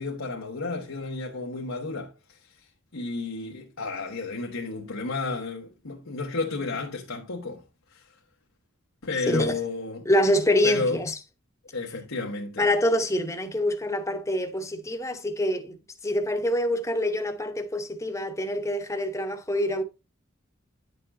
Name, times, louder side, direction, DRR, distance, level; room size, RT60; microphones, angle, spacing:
voice 1, 0.0-2.6 2.9-7.6 7.9-8.1 9.0-10.1 10.6-11.0 11.7-12.7, left 3 dB, 90° left, 1.1 m, -32 dB
voice 2, 9.3-9.6 10.0-11.2 12.6-15.8 16.0-19.8, left 1 dB, 15° left, 0.9 m, -25 dB
10.0 x 6.7 x 2.6 m
head